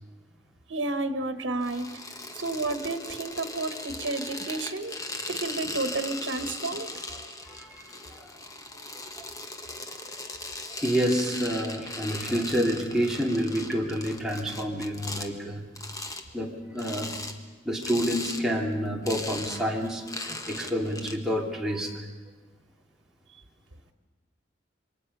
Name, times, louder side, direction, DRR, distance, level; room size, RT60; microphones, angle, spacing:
voice 1, 0.7-1.9 2.4-5.0 5.3-6.9, right 2 dB, 90° right, 9 dB, 1.3 m, -31 dB
sound 1, 1.6-15.3 15.8-16.2 16.8-17.4 17.8-18.4 18.7-21.2, left 2 dB, 20° left, 1.4 m, -38 dB
voice 2, 7.2-8.3 10.7-15.7 16.3-17.1 17.6-22.1, equal, 5° right, -2 dB, 2.8 m, -29 dB
27.5 x 23.5 x 5.6 m, 1.2 s
head